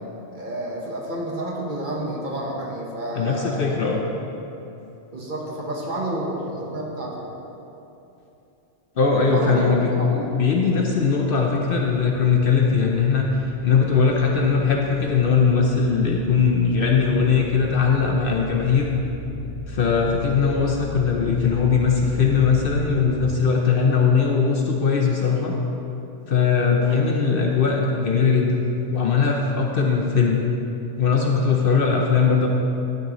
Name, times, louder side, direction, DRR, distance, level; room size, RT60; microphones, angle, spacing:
voice 1, 0.3-3.7 5.1-7.3 9.3-10.3 26.8-27.1, right 1 dB, 45° right, -3 dB, 1.2 m, -30 dB
voice 2, 3.1-4.0 9.0-9.9 10.3-18.9 19.7-25.5 26.3-30.4 31.0-32.5, left 5 dB, 55° left, 0 dB, 0.8 m, -20 dB
sound 1, 12.1-23.3, left 1 dB, 70° right, 1.9 m, -38 dB
11.5 x 6.4 x 3.0 m, 2.9 s
omnidirectional pair, 1.2 m